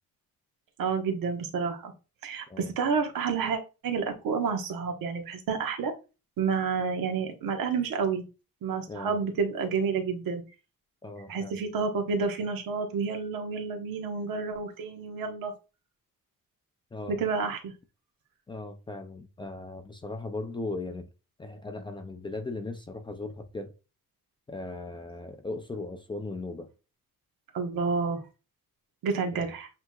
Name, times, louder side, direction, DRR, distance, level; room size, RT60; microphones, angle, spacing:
voice 1, 0.8-1.9 2.2-5.9 6.4-8.2 8.6-10.4 11.3-15.5 17.1-17.7 27.5-28.2 29.0-29.7, right 5 dB, 80° right, 1.2 m, -29 dB
voice 2, 11.0-11.6 16.9-17.2 18.5-21.1 21.4-23.7 24.5-26.7, left 2 dB, 15° left, 0.3 m, -38 dB
7.8 x 3.0 x 2.3 m
cardioid pair, 175°, 33 cm